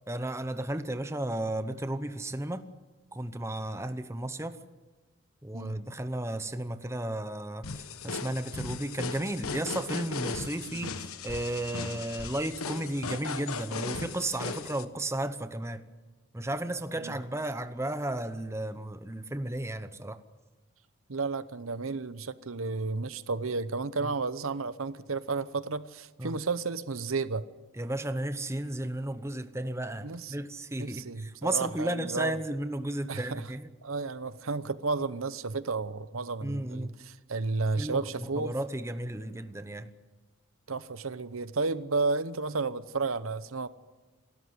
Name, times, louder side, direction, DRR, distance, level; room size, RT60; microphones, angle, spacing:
voice 1, 0.1-2.7 3.1-4.6 5.4-15.8 16.3-20.2 24.0-24.1 26.2-26.4 27.7-33.7 36.4-37.0 37.8-39.9, right 1 dB, 15° right, 0.9 m, -34 dB
sound 1, 7.6-14.8, left 4 dB, 85° left, 1.3 m, -37 dB
voice 2, 21.1-27.4 30.0-30.3 30.8-32.4 33.1-33.4 33.8-38.5 40.7-43.7, right 4 dB, 75° right, 0.9 m, -32 dB
28.0 x 13.5 x 9.6 m
head